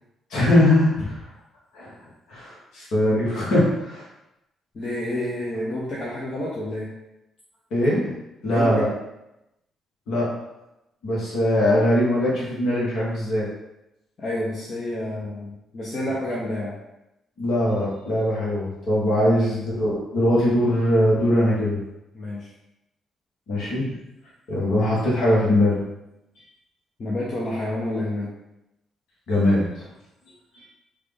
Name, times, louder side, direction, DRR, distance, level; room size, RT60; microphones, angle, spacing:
voice 1, 0.3-1.2 1.7-2.0 2.3-4.1 7.7-8.1 8.4-8.9 10.1-10.3 11.0-13.5 17.4-21.8 23.5-23.9 24.5-25.8 29.3-29.9 30.5-30.7, left 1 dB, 60° left, -5 dB, 1.3 m, -21 dB
voice 2, 4.7-6.9 8.4-8.8 14.2-16.7 19.2-19.3 22.1-22.5 27.0-28.3, left 1 dB, 40° left, -6 dB, 0.8 m, -29 dB
4.9 x 2.4 x 3.3 m, 0.89 s
figure-of-eight pair, 40°, 0 cm